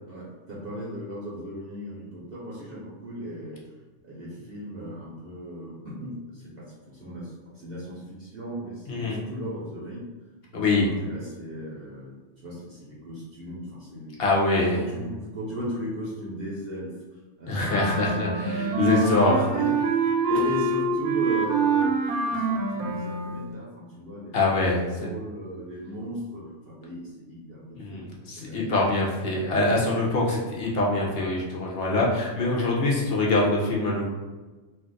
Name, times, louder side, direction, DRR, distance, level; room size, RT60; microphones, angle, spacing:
voice 1, 0.1-3.6 4.1-10.0 10.5-12.2 12.4-14.1 14.5-16.9 17.4-21.9 22.3-24.6 24.9-28.0 28.3-28.7 31.8-31.9, equal, 55° right, -7 dB, 0.7 m, -36 dB
voice 2, 10.5-10.9 14.2-14.8 17.5-19.4 24.3-24.8 27.8-34.1, left 2 dB, 60° left, -3 dB, 0.7 m, -24 dB
Wind instrument woodwind instrument, 17.6-23.5, right 3 dB, 90° right, 1.0 m, -26 dB
2.5 x 2.4 x 3.8 m, 1.2 s
omnidirectional pair, 1.5 m